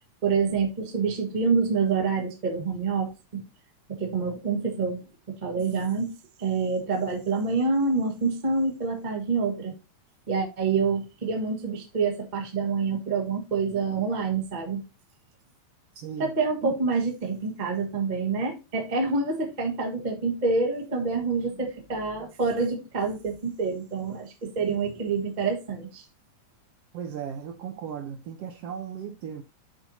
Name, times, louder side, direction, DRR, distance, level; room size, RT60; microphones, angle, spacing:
voice 1, 0.2-3.4 3.9-5.0 5.3-9.7 10.3-14.8 16.2-26.1, right 4 dB, 40° right, 0.6 m, -27 dB
voice 2, 15.9-16.3 16.6-16.7 26.9-29.4, right 7 dB, 75° right, 1.4 m, -36 dB
12.5 x 4.3 x 2.8 m
omnidirectional pair, 3.5 m